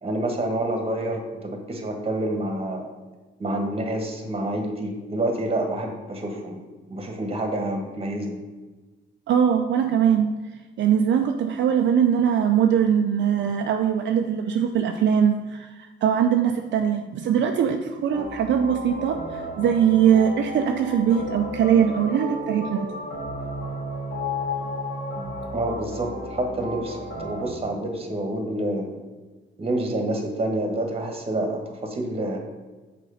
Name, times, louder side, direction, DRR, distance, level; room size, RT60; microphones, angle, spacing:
voice 1, 0.0-2.9 3.4-6.6 6.9-8.4 25.5-28.9 29.6-32.4, right 1 dB, 30° right, 4 dB, 1.5 m, -28 dB
voice 2, 9.3-10.4 10.8-22.9, right 8 dB, 65° right, 4 dB, 0.6 m, -21 dB
sound 1, 18.1-27.5, left 1 dB, 70° left, 2.2 m, -33 dB
6.4 x 4.3 x 5.6 m, 1.2 s
cardioid pair, 90°, 20 cm